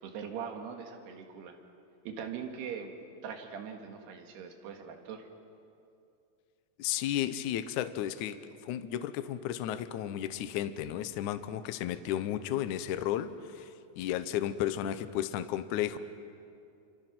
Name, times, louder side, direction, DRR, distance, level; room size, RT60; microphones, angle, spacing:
voice 1, 0.0-1.6 2.1-2.9 3.2-5.3, right 7 dB, 80° right, 4 dB, 3.9 m, -41 dB
voice 2, 6.8-16.0, left 11 dB, 85° left, 11 dB, 1.7 m, -33 dB
28.5 x 26.5 x 6.1 m, 2.5 s
omnidirectional pair, 4.7 m